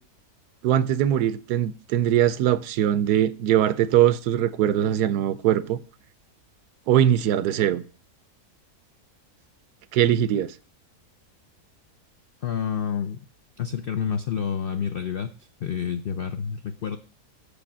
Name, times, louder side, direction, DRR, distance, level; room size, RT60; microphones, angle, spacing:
voice 1, 0.6-5.8 6.9-7.8 9.9-10.5, right 11 dB, 85° right, 1.2 m, -21 dB
voice 2, 12.4-13.2 13.6-15.3 15.6-17.0, left 7 dB, 75° left, 0.5 m, -28 dB
7.0 x 5.1 x 7.2 m
omnidirectional pair, 1.7 m